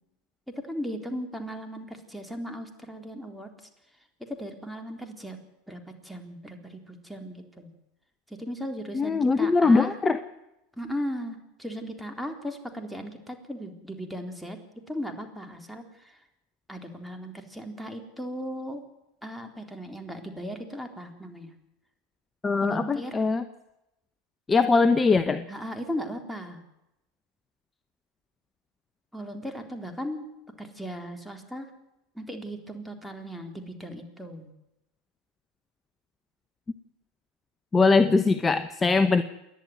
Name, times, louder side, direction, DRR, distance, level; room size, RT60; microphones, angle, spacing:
voice 1, 0.5-3.5 4.3-5.4 5.7-7.7 8.4-9.9 10.8-14.6 14.9-16.2 16.7-18.8 19.2-21.5 22.6-23.2 25.5-26.6 29.1-30.3 30.6-31.7 32.2-34.5, equal, ahead, 4 dB, 3.7 m, -37 dB
voice 2, 8.9-10.2 22.4-23.4 24.5-25.5 37.7-39.2, left 4 dB, 20° left, 11 dB, 1.0 m, -21 dB
28.0 x 11.0 x 9.4 m, 0.90 s
hypercardioid pair, 90°, 0 cm